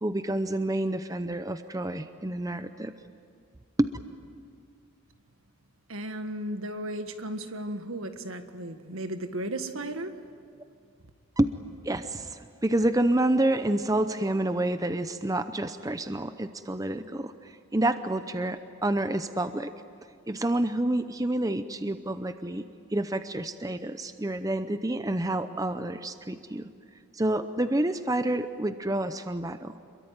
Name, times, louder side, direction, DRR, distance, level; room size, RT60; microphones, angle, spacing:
voice 1, 0.0-2.9 3.8-3.9 11.4-11.5 11.8-19.7 20.3-26.7 27.1-29.8, right 1 dB, 15° right, 10 dB, 0.7 m, -28 dB
voice 2, 5.9-10.1, right 1 dB, 70° right, 8 dB, 1.7 m, -35 dB
27.5 x 22.5 x 9.6 m, 2.2 s
head